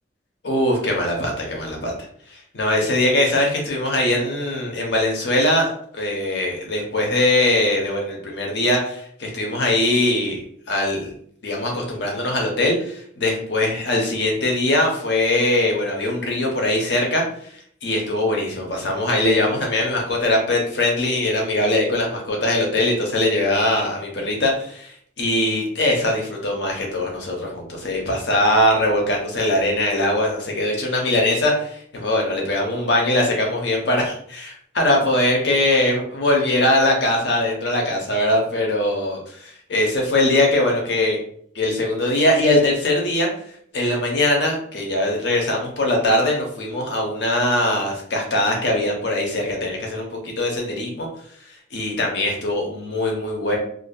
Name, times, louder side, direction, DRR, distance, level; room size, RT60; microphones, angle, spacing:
voice 1, 0.4-1.9 2.3-5.7 5.9-10.4 10.7-11.1 11.4-17.5 17.8-39.2 39.7-41.2 41.5-43.3 43.7-51.1 51.5-53.6, left 1 dB, 65° left, 0 dB, 0.7 m, -21 dB
2.5 x 2.2 x 2.3 m, 0.63 s
head